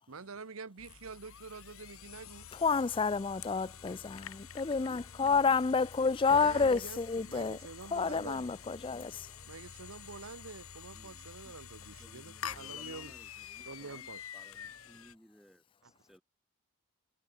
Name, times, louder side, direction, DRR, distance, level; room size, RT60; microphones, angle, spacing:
voice 1, 0.1-2.5 6.3-8.5 9.5-13.1 13.7-14.2, right 4 dB, 80° right, 1.1 m, -47 dB
sound 1, 0.8-15.1, left 8 dB, 80° left, 1.4 m, -48 dB
voice 2, 2.6-7.6 7.9-9.1, left 5 dB, 25° left, 0.3 m, -29 dB
voice 3, 10.9-11.6 12.0-16.2, equal, ahead, 6.4 m, -60 dB
head